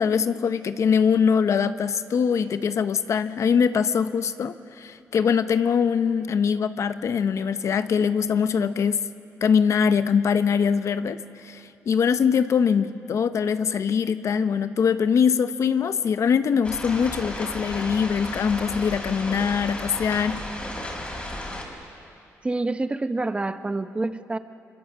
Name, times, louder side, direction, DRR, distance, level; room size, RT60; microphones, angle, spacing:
voice 1, 0.0-9.1 9.4-20.4, left 6 dB, 60° left, 11 dB, 0.8 m, -23 dB
sound 1, 16.6-21.6, left 1 dB, 20° left, 5.2 m, -34 dB
voice 2, 22.4-24.4, right 2 dB, 20° right, 10 dB, 0.8 m, -27 dB
26.0 x 25.5 x 7.4 m, 2.6 s
cardioid pair, 120°, 6 cm